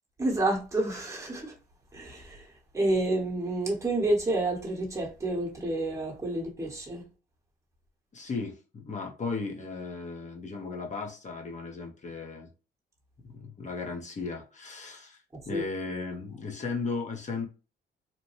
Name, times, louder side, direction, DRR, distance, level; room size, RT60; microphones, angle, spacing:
voice 1, 0.2-1.5 1.9-7.1 15.3-15.6, right 2 dB, 15° right, 1.0 m, -29 dB
voice 2, 8.1-12.5 13.3-15.2 15.5-17.5, left 4 dB, 35° left, 0.9 m, -36 dB
2.9 x 2.2 x 2.9 m
cardioid pair, 90°, 20 cm